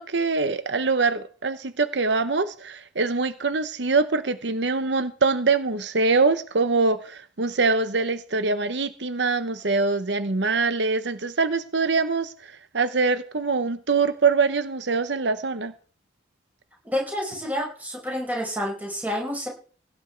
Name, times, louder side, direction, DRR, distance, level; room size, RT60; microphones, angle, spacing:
voice 1, 0.0-15.7, right 4 dB, 75° right, 12 dB, 0.9 m, -24 dB
voice 2, 16.8-19.5, equal, 10° right, -1 dB, 5.4 m, -29 dB
17.0 x 10.5 x 4.6 m, 0.40 s
head